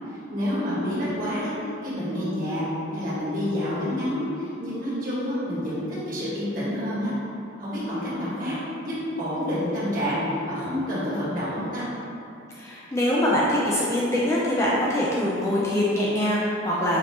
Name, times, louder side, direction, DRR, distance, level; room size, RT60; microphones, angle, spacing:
voice 1, 0.3-1.5 1.8-2.6 2.9-7.1 7.6-8.5 8.8-11.8, equal, 45° right, -10 dB, 1.3 m, -28 dB
voice 2, 12.5-17.0, left 1 dB, 15° left, -6 dB, 0.3 m, -23 dB
5.1 x 2.7 x 2.8 m, 2.8 s
head